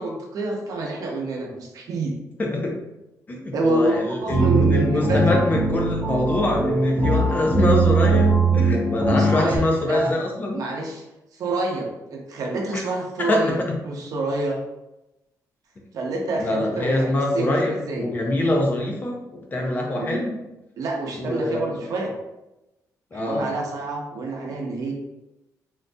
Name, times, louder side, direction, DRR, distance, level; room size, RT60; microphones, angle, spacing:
voice 1, 0.0-2.1 3.5-5.4 9.1-10.1 10.5-11.0 11.3-14.6 15.9-18.1 19.9-20.2 20.8-22.1 23.1-24.9, right 2 dB, 65° right, 0 dB, 0.7 m, -27 dB
voice 2, 2.4-2.7 3.3-10.6 13.2-13.8 16.4-20.4 21.2-21.8 23.1-23.5, left 1 dB, 30° left, 0 dB, 0.6 m, -24 dB
sound 1, 4.3-9.6, right 3 dB, 20° right, 0.7 m, -21 dB
3.8 x 2.5 x 2.2 m, 0.95 s
cardioid pair, 140°, 7 cm